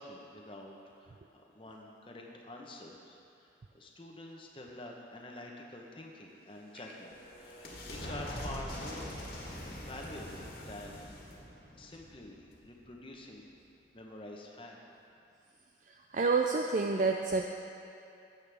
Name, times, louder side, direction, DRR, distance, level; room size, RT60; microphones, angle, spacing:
voice 1, 0.0-9.1 9.8-11.2 11.8-13.4 13.9-14.8, left 1 dB, 30° left, 0 dB, 0.9 m, -47 dB
sound 1, 6.5-12.9, left 1 dB, 55° left, 1.7 m, -44 dB
voice 2, 15.9-17.4, right 4 dB, 45° right, 3 dB, 0.3 m, -29 dB
12.5 x 8.2 x 3.5 m, 2.6 s
head